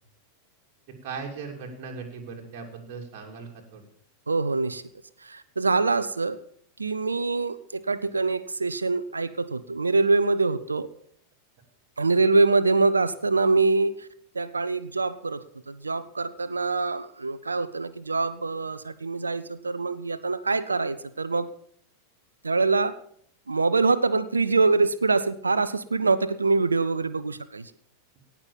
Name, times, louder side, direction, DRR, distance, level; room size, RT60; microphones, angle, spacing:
voice 1, 1.0-3.8, right 5 dB, 45° right, 0 dB, 2.7 m, -38 dB
voice 2, 4.3-4.8 5.2-6.4 6.8-10.9 12.0-14.1 14.3-21.5 22.4-23.0 23.5-27.7, right 3 dB, 80° right, 14 dB, 0.7 m, -24 dB
17.5 x 6.1 x 7.1 m, 0.62 s
figure-of-eight pair, 90°, 0 cm